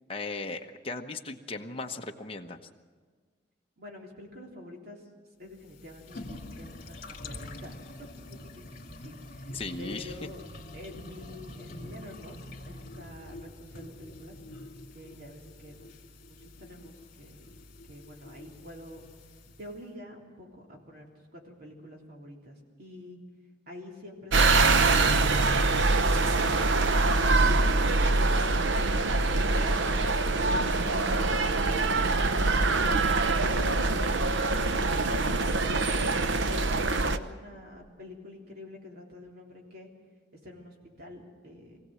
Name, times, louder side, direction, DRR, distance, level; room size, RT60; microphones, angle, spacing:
voice 1, 0.1-2.6 9.5-10.1, left 3 dB, 30° left, 3 dB, 1.1 m, -37 dB
voice 2, 3.8-5.1 5.4-10.4 10.7-14.4 14.9-15.9 16.2-17.5 17.9-19.0 19.6-21.1 21.3-23.2 23.7-28.5 29.2-30.1 30.4-32.9 35.6-39.9 40.4-41.8, left 1 dB, 55° right, 0 dB, 3.5 m, -47 dB
sound 1, 5.5-19.8, left 1 dB, 50° left, 2.6 m, -46 dB
sound 2, 24.3-37.2, right 3 dB, 80° right, 0.9 m, -24 dB
23.5 x 16.0 x 7.8 m, 1.5 s
head